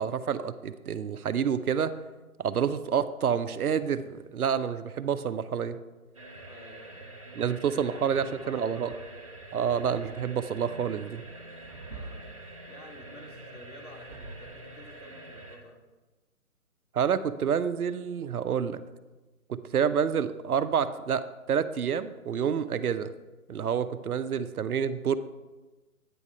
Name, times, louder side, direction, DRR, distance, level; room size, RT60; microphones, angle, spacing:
voice 1, 0.0-1.9 2.4-5.8 7.4-8.9 9.5-11.2 16.9-18.8 19.5-23.1 23.5-25.2, right 7 dB, 80° right, 12 dB, 0.6 m, -28 dB
sound 1, 6.1-15.6, right 2 dB, 25° right, 0.5 m, -45 dB
voice 2, 6.4-9.2 11.8-12.3 12.7-15.8, left 1 dB, 75° left, -2 dB, 2.2 m, -51 dB
9.2 x 3.6 x 5.3 m, 1.2 s
figure-of-eight pair, 150°, 44 cm